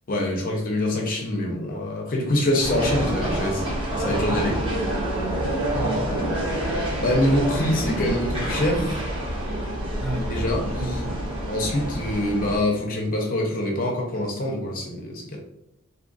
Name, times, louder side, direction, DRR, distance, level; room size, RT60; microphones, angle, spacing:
voice 1, 0.1-3.6 3.9-4.7 7.0-8.8 10.3-11.0 11.5-15.4, left 1 dB, 45° left, -1 dB, 0.7 m, -25 dB
sound 1, 2.6-12.6, right 1 dB, 25° right, 0.9 m, -27 dB
voice 2, 5.8-6.2 7.5-8.1 8.7-8.9 10.0-10.4 10.8-11.1, equal, ahead, -5 dB, 0.9 m, -32 dB
2.7 x 2.5 x 3.8 m, 0.85 s
head